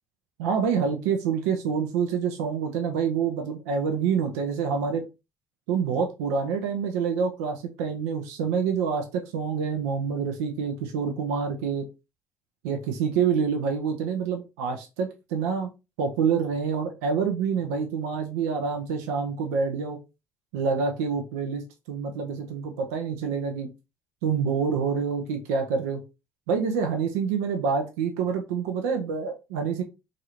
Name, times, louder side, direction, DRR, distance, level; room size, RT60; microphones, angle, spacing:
voice 1, 0.4-5.0 5.7-11.9 12.6-15.7 16.0-20.0 20.5-23.7 24.2-26.0 26.5-29.8, right 6 dB, 85° right, 4 dB, 0.5 m, -27 dB
3.0 x 2.5 x 2.9 m, 0.26 s
hypercardioid pair, 60°, 8 cm